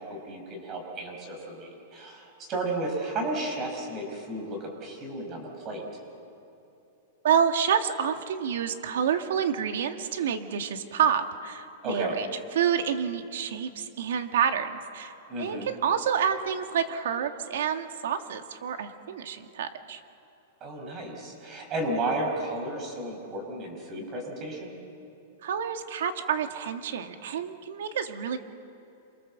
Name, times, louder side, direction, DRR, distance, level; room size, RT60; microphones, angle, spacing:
voice 1, 0.0-5.8 11.8-12.2 15.3-15.7 20.6-24.8, right 2 dB, 25° right, 3 dB, 5.3 m, -33 dB
voice 2, 7.2-12.3 12.5-20.0 25.4-28.4, right 8 dB, 75° right, 7 dB, 1.9 m, -28 dB
27.5 x 24.0 x 7.4 m, 2.9 s
supercardioid pair, 165°, 0 cm